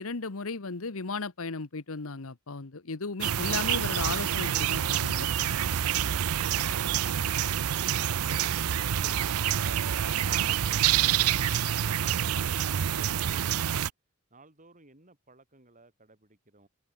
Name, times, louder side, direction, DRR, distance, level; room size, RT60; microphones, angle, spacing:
voice 1, 0.0-5.5, left 4 dB, 70° left, 1.2 m, -35 dB
sound 1, 3.2-13.9, right 10 dB, 85° right, 0.5 m, -27 dB
voice 2, 14.3-16.7, right 2 dB, 35° right, 4.9 m, -58 dB
head